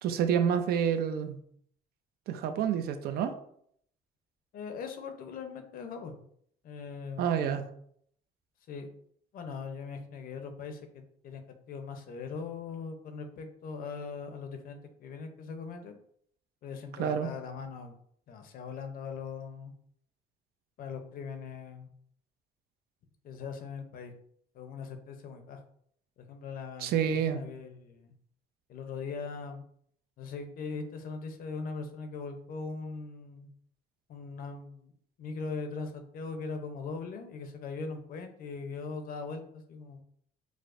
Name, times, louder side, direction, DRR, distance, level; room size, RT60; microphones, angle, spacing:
voice 1, 0.0-1.4 2.3-3.3 7.2-7.6 17.0-17.3 26.8-27.4, right 8 dB, 65° right, 9 dB, 0.4 m, -28 dB
voice 2, 4.5-6.2 6.6-7.7 8.7-8.9 9.3-16.0 16.6-17.9 18.3-19.7 20.8-21.9 23.2-24.1 24.5-25.6 26.2-28.1 28.7-29.6 30.2-33.5 34.1-34.9 35.2-40.0, left 5 dB, 60° left, 6 dB, 0.6 m, -40 dB
4.7 x 2.1 x 2.5 m, 0.66 s
cardioid pair, 110°, 17 cm